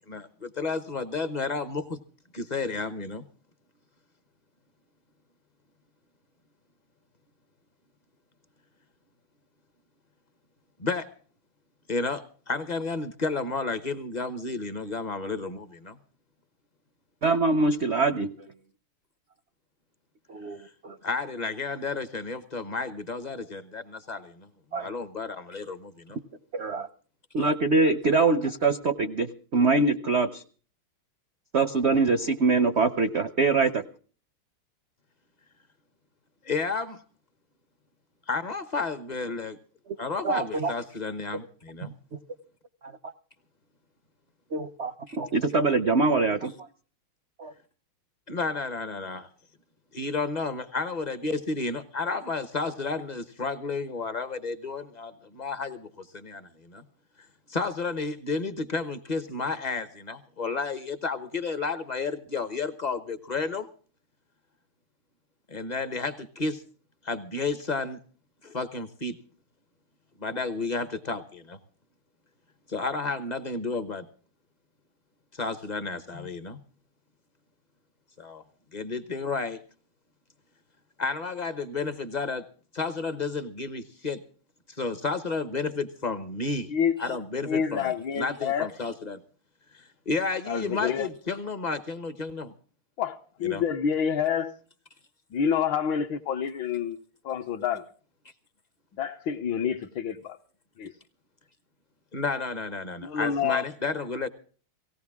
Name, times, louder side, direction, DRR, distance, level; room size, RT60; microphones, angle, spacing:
voice 1, 0.1-2.0 2.3-3.2 10.8-11.1 11.9-16.0 21.0-24.5 24.7-26.2 36.4-37.0 38.3-39.6 40.0-41.9 45.1-45.2 48.3-49.3 49.9-56.8 57.5-63.7 65.5-66.6 67.0-68.0 68.4-69.2 70.2-71.6 72.7-74.0 75.3-76.6 78.2-78.4 78.7-79.6 81.0-82.4 82.7-84.2 84.8-86.7 87.0-89.2 89.7-92.5 93.4-93.6 102.1-104.3, left 4 dB, 40° left, 0.6 m, -32 dB
voice 2, 17.2-18.3 20.3-21.0 24.7-24.9 26.5-26.9 27.3-30.4 31.5-33.8 40.2-40.7 44.5-46.5 47.4-47.5, right 3 dB, 60° right, 0.6 m, -24 dB
voice 3, 87.4-88.7 90.5-91.1 93.0-94.5 95.3-97.0 97.2-97.8 99.0-100.4 100.8-100.9 103.0-103.6, left 7 dB, 70° left, 1.5 m, -28 dB
18.0 x 17.0 x 3.6 m
omnidirectional pair, 2.4 m